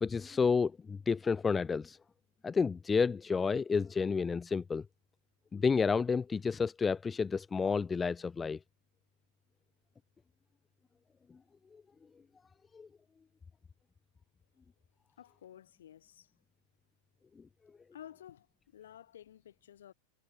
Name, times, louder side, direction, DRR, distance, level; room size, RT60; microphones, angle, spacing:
voice 1, 0.0-2.0 2.4-4.8 5.5-8.6 12.7-12.9, left 5 dB, 15° left, 0.5 m, -30 dB
voice 2, 15.2-16.3 17.9-18.5 18.7-19.9, left 10 dB, 60° left, 4.7 m, -53 dB
figure-of-eight pair, 90°, 0 cm